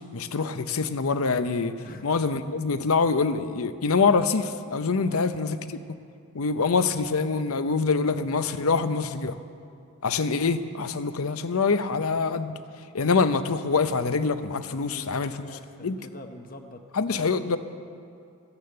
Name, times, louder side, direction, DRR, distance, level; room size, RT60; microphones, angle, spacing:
voice 1, 0.1-1.7 2.0-5.6 5.9-6.0 6.3-9.4 10.0-12.5 12.9-15.3 15.8-16.0 16.9-17.6, left 4 dB, 80° left, 11 dB, 0.7 m, -25 dB
voice 2, 14.7-16.8 17.1-17.3, left 1 dB, 40° left, 5 dB, 0.8 m, -44 dB
14.0 x 9.9 x 7.8 m, 2.4 s
head